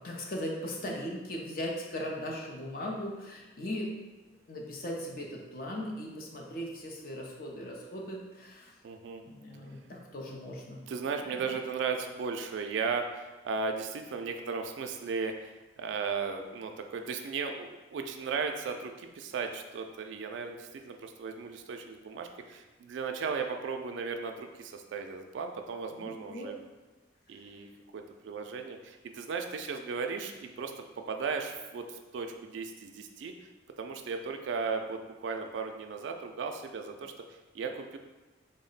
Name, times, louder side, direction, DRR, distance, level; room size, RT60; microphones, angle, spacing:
voice 1, 0.0-3.9 4.5-8.7 9.2-10.9 11.3-11.5 25.9-26.5 27.3-27.5, equal, 50° left, -1 dB, 0.5 m, -38 dB
voice 2, 8.8-9.2 10.9-26.5 27.3-30.7 31.1-33.3 33.8-37.1 37.5-38.0, right 5 dB, 80° right, 4 dB, 0.3 m, -36 dB
3.7 x 2.1 x 3.9 m, 1.2 s
head